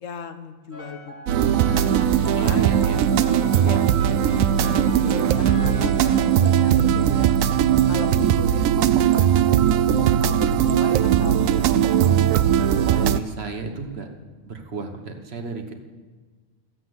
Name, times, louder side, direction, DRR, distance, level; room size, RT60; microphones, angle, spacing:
voice 1, 0.0-1.3 1.7-2.7 3.4-11.7, left 6 dB, 70° left, 9 dB, 1.2 m, -37 dB
sound 1, 0.7-6.2, equal, 15° right, 2.8 m, -40 dB
sound 2, 1.3-13.2, right 10 dB, 85° right, 1.0 m, -19 dB
voice 2, 2.4-3.0 3.5-3.9 5.5-5.9 8.0-8.3 12.8-14.1 14.4-15.7, right 4 dB, 55° right, 5 dB, 1.4 m, -33 dB
14.0 x 7.7 x 7.9 m, 1.4 s
omnidirectional pair, 1.4 m